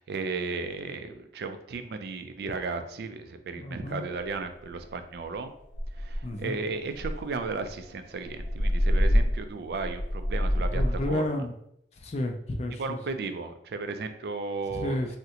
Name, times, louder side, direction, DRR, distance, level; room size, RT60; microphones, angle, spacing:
voice 1, 0.0-5.5 6.0-11.2 12.8-15.0, right 4 dB, 60° right, 9 dB, 0.3 m, -34 dB
voice 2, 3.6-4.0 6.2-6.6 10.5-11.5 12.0-13.0 14.7-15.2, left 1 dB, 40° left, 5 dB, 0.4 m, -32 dB
sound 1, 4.3-4.4 4.7-5.0 5.3-5.4 5.7-6.4 6.9-11.1, equal, 75° left, 0.6 m, -27 dB
3.6 x 2.1 x 2.8 m, 0.72 s
head